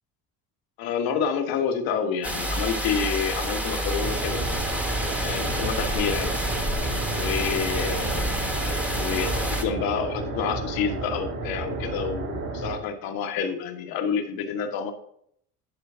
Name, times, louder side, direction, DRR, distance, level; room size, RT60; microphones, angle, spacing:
voice 1, 0.8-4.5 5.2-6.3 7.1-8.3 8.9-14.9, left 6 dB, 75° left, 5 dB, 1.4 m, -28 dB
sound 1, 2.2-9.6, equal, 5° right, 1.1 m, -28 dB
sound 2, 4.0-12.8, right 3 dB, 50° right, 2.1 m, -32 dB
10.5 x 4.6 x 5.6 m, 0.69 s
cardioid pair, 150°, 36 cm